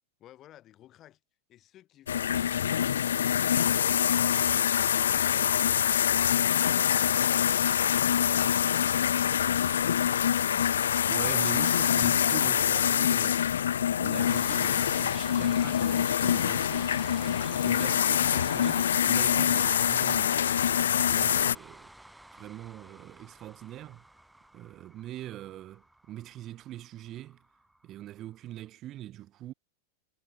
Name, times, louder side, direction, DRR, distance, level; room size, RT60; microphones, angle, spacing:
voice 1, 0.2-1.2 19.5-19.7, left 13 dB, 30° left, 5.7 m, -54 dB
sound 1, 2.1-21.6, left 9 dB, 65° left, 0.5 m, -25 dB
voice 2, 11.1-13.5 13.9-20.5 21.0-21.9 22.3-24.1 24.5-27.4 27.8-29.5, right 13 dB, 35° right, 4.4 m, -42 dB
sound 2, 14.2-28.3, right 1 dB, 5° right, 7.9 m, -48 dB
figure-of-eight pair, 90°, 0 cm